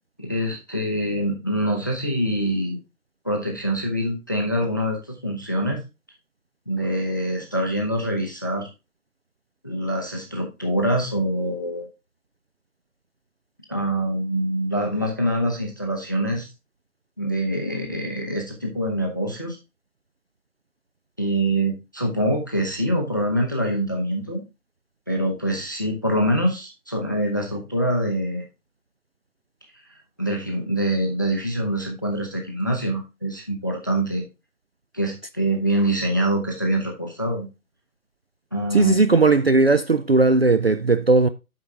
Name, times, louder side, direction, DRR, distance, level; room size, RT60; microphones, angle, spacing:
voice 1, 0.2-2.8 3.2-5.8 6.7-8.7 9.6-11.9 13.7-16.5 17.2-19.6 21.2-24.4 25.1-28.5 30.2-34.2 34.9-37.5 38.5-39.0, right 1 dB, 15° left, 0.6 m, -25 dB
voice 2, 38.7-41.3, right 3 dB, 45° right, 0.4 m, -17 dB
8.0 x 5.6 x 3.5 m
figure-of-eight pair, 155°, 44 cm